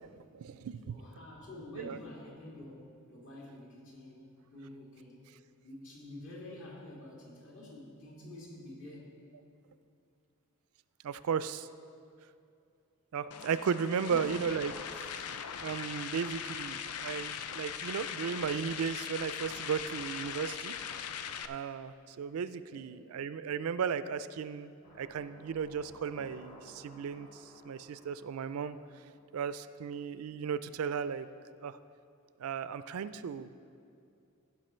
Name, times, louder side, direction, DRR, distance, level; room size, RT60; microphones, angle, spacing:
voice 1, 0.0-1.0 1.7-2.0 11.0-11.7 13.1-15.2 15.6-20.7 21.4-27.3 27.6-28.8 29.3-31.3 31.6-31.8 32.4-33.5, right 6 dB, 75° right, 14 dB, 0.4 m, -35 dB
voice 2, 0.8-5.2 5.6-9.1 14.1-14.4 22.7-22.9, left 1 dB, 60° left, -3 dB, 2.3 m, -48 dB
sound 1, 13.3-21.5, left 8 dB, 85° left, 0.5 m, -40 dB
sound 2, 24.8-29.7 30.1-30.2, left 1 dB, 40° left, 1.4 m, -56 dB
15.5 x 5.8 x 4.4 m, 2.5 s
head